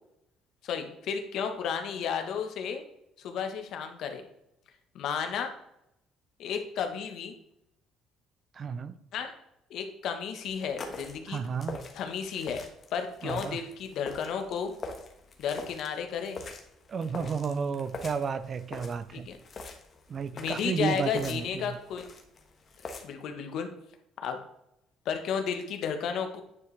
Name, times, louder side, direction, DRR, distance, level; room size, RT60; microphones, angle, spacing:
voice 1, 0.6-2.8 3.2-4.2 4.9-5.5 6.4-7.3 9.1-9.3 9.7-11.4 11.9-12.6 12.9-14.7 15.4-16.4 19.1-19.4 20.3-22.1 23.0-23.7 24.2-24.4 25.0-26.4, left 7 dB, 65° left, 6 dB, 1.1 m, -33 dB
voice 2, 8.5-9.0 11.3-11.8 13.2-13.6 16.9-19.3 20.1-21.8, right 6 dB, 35° right, 14 dB, 0.4 m, -32 dB
sound 1, 10.4-23.0, left 3 dB, 35° left, 1.2 m, -44 dB
9.6 x 4.8 x 3.3 m, 0.79 s
cardioid pair, 125°, 0 cm